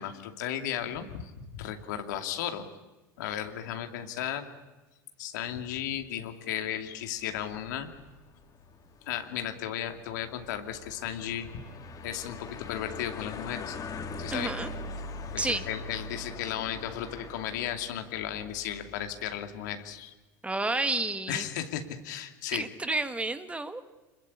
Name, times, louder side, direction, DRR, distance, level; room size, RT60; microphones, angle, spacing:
voice 1, 0.0-2.7 3.2-4.4 5.2-7.9 9.1-11.6 12.0-13.8 14.2-14.5 15.3-20.1 21.3-22.6, left 10 dB, 75° left, 6 dB, 2.6 m, -35 dB
sound 1, 7.2-19.4, left 3 dB, 40° left, 3.5 m, -42 dB
voice 2, 14.3-14.7 15.4-15.6 20.4-21.4 22.5-23.8, right 2 dB, 10° right, 10 dB, 1.7 m, -30 dB
26.0 x 21.5 x 8.7 m, 1.2 s
hypercardioid pair, 85°, 10 cm